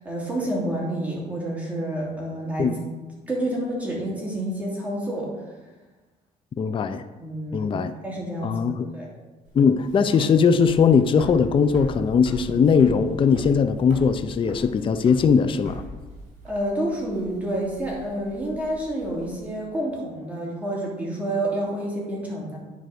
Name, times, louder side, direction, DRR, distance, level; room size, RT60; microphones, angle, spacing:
voice 1, 0.0-2.7 3.3-5.3 7.2-7.7 8.0-9.1 16.4-22.6, right 1 dB, 10° right, -4 dB, 2.7 m, -29 dB
voice 2, 6.6-7.0 7.5-7.9 8.4-8.9 9.5-15.8, left 6 dB, 30° left, 11 dB, 0.5 m, -20 dB
sound 1, 9.5-19.4, right 1 dB, 45° right, 3.3 m, -41 dB
9.3 x 4.6 x 6.5 m, 1.2 s
cardioid pair, 110°, 17 cm